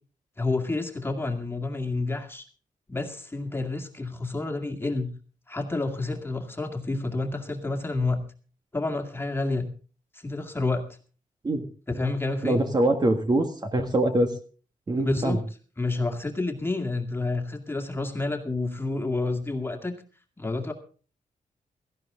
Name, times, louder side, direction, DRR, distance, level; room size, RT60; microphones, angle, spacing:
voice 1, 0.4-2.4 2.9-5.1 5.5-8.2 8.7-9.7 10.2-10.8 11.9-12.6 15.0-15.4 15.8-20.0 20.4-20.7, left 3 dB, 15° left, 4 dB, 2.1 m, -29 dB
voice 2, 12.4-14.3 14.9-15.4, right 1 dB, 30° right, 5 dB, 1.7 m, -23 dB
17.0 x 14.5 x 3.7 m, 0.38 s
wide cardioid pair, 140°, 14 cm